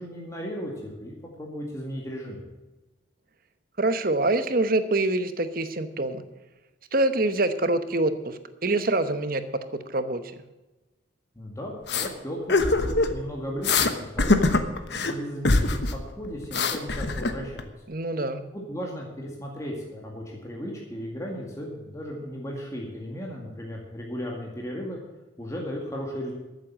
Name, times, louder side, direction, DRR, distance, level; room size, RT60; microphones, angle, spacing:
voice 1, 0.0-2.4 11.4-14.6 15.1-17.7 18.5-25.0 25.4-26.3, equal, 15° left, -2 dB, 2.0 m, -36 dB
voice 2, 3.8-6.2 6.9-9.4 9.9-10.2 17.9-18.4, right 2 dB, 45° right, 11 dB, 1.0 m, -25 dB
sound 1, 11.9-12.1 12.5-13.2 13.6-13.9 14.2-15.1 15.5-16.0 16.2-17.6, left 3 dB, 55° left, 1.1 m, -23 dB
13.5 x 7.6 x 7.4 m, 1.1 s
head